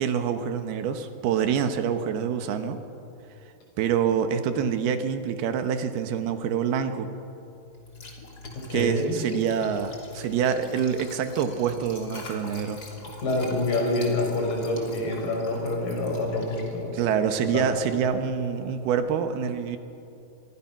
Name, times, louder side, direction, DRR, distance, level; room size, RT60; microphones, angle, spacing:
voice 1, 0.0-2.8 3.8-7.1 8.7-12.8 16.9-19.8, right 7 dB, 85° right, 8 dB, 3.3 m, -26 dB
Liquid, 7.7-18.9, left 2 dB, 25° left, 3.1 m, -44 dB
voice 2, 8.5-9.2 13.2-16.9 17.4-17.7, left 2 dB, 60° left, 0 dB, 6.9 m, -27 dB
27.5 x 23.0 x 6.0 m, 2.7 s
omnidirectional pair, 4.4 m